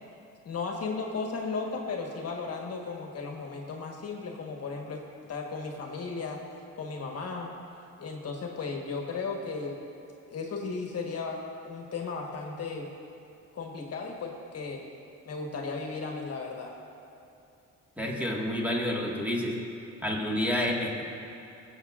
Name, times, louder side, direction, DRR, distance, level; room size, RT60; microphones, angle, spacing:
voice 1, 0.4-5.0 5.3-6.4 6.8-7.5 8.0-9.8 10.3-12.9 13.5-14.8 15.2-16.8, left 4 dB, 50° left, 0 dB, 1.3 m, -35 dB
voice 2, 18.0-19.5 20.0-21.0, left 1 dB, 5° right, -3 dB, 1.6 m, -29 dB
22.5 x 7.6 x 2.5 m, 2.7 s
cardioid pair, 85°, 31 cm